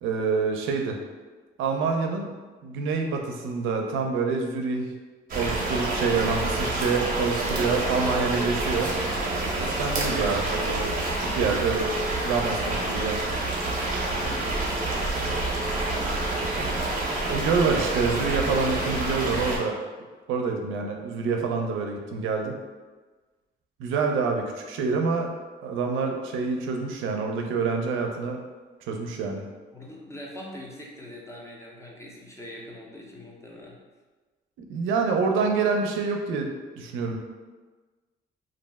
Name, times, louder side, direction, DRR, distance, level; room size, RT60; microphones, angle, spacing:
voice 1, 0.0-1.0 1.6-2.3 2.6-4.9 5.3-8.9 9.5-10.9 11.2-11.9 12.2-13.2 16.5-16.8 17.3-19.8 20.3-22.6 23.8-25.3 25.6-28.4 28.9-29.4 34.7-36.5 36.8-37.2, right 4 dB, 90° right, 2 dB, 0.4 m, -27 dB
sound 1, 5.3-19.6, right 2 dB, 45° right, 0.7 m, -28 dB
voice 2, 7.5-8.7 14.2-17.0 29.7-33.8, left 1 dB, 15° left, -2 dB, 0.5 m, -43 dB
2.4 x 2.0 x 3.4 m, 1.3 s
cardioid pair, 90°, 20 cm